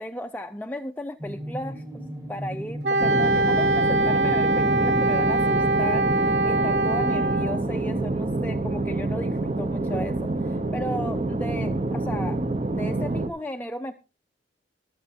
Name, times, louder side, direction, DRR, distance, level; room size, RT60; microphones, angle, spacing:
voice 1, 0.0-12.4 12.7-13.9, left 1 dB, 10° left, 5 dB, 0.5 m, -35 dB
sound 1, 1.2-13.2, equal, 15° right, 1.5 m, -40 dB
Wind instrument woodwind instrument, 2.8-7.6, right 2 dB, 70° right, 0.6 m, -23 dB
sound 2, 3.0-13.3, right 2 dB, 35° right, 0.8 m, -27 dB
22.5 x 7.6 x 2.7 m, 0.31 s
head